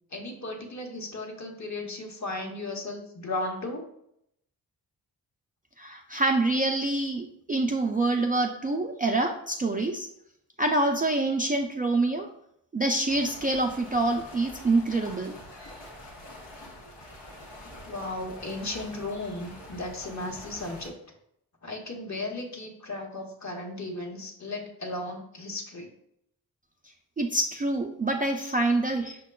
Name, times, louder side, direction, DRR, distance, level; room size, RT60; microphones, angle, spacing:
voice 1, 0.1-3.9 17.9-20.9 21.6-25.9, left 2 dB, 40° left, 1 dB, 1.0 m, -35 dB
voice 2, 5.8-10.1 10.6-12.3 12.7-15.4 27.2-29.2, right 2 dB, 20° right, 1 dB, 0.4 m, -26 dB
sound 1, 13.1-20.9, left 1 dB, 85° left, 1.0 m, -45 dB
5.7 x 2.2 x 2.2 m, 0.74 s
supercardioid pair, 45°, 42 cm